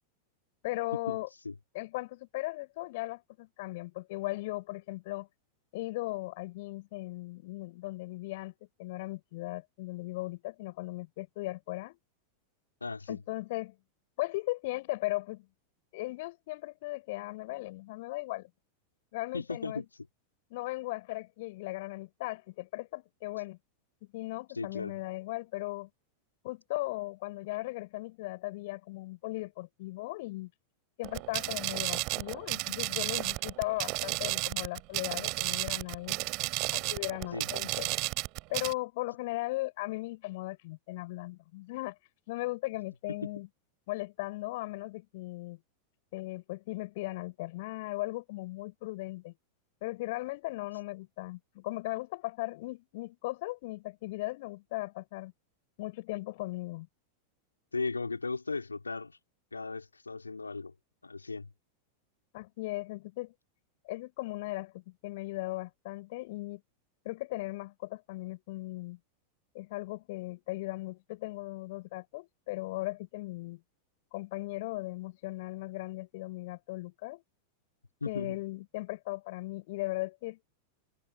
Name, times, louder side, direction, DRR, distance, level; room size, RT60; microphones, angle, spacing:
voice 1, 0.6-1.3 1.7-5.3 5.7-8.5 8.8-12.0 13.1-13.8 14.2-15.5 15.9-18.5 19.1-19.8 20.5-23.6 24.1-25.9 26.4-30.5 31.0-36.2 36.7-37.9 38.5-42.0 42.3-43.5 43.9-45.6 46.1-49.3 49.8-55.3 55.8-56.9 62.3-63.3 63.8-66.6 67.0-69.0 69.5-73.6 74.1-77.2 78.0-80.4, left 20 dB, 50° left, 6.1 m, -37 dB
voice 2, 12.8-13.2 19.3-19.8 24.5-24.9 37.3-37.5 43.1-43.3 57.7-59.2 59.5-60.7 61.0-61.5 78.0-78.4, left 3 dB, 80° left, 4.7 m, -36 dB
sound 1, 31.0-38.7, right 25 dB, 40° right, 4.2 m, -33 dB
figure-of-eight pair, 90°, 0 cm